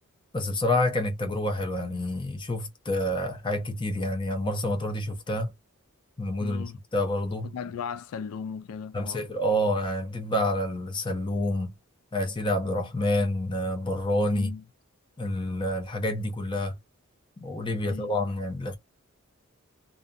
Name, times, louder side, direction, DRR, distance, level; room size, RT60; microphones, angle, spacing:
voice 1, 0.3-5.5 6.2-6.6 6.9-7.5 8.9-11.7 12.1-14.5 15.2-16.8 17.4-18.8, left 1 dB, 20° left, 0.6 m, -28 dB
voice 2, 6.4-6.8 7.4-9.3 14.3-14.6 17.8-18.3, left 6 dB, 80° left, 0.3 m, -37 dB
2.5 x 2.4 x 2.4 m
head